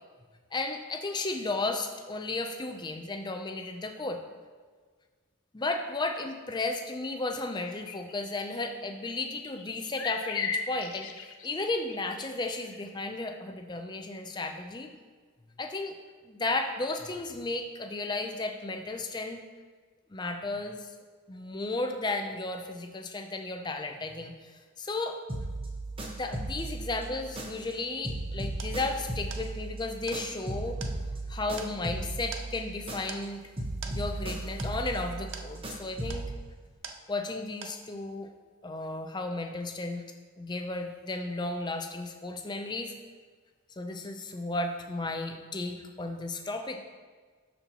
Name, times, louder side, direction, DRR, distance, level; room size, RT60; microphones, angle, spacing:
voice 1, 0.5-4.2 5.5-11.1 11.4-14.9 15.6-16.0 16.2-19.4 20.1-20.9 21.3-24.5 24.8-25.2 26.0-30.8 31.3-33.5 33.9-36.3 37.1-38.3 38.6-40.0 40.4-42.9 43.8-46.8, left 2 dB, 20° left, 5 dB, 0.4 m, -34 dB
sound 1, 7.9-8.1 9.3-12.3 12.6-12.9 13.3-13.4, left 5 dB, 70° left, 0.6 m, -36 dB
sound 2, 25.3-27.8 28.0-33.3 33.6-36.4, right 2 dB, 25° right, 0.9 m, -36 dB
sound 3, 28.3-37.4 37.6-38.2, right 6 dB, 55° right, 0.6 m, -47 dB
12.0 x 4.3 x 2.9 m, 1.5 s
head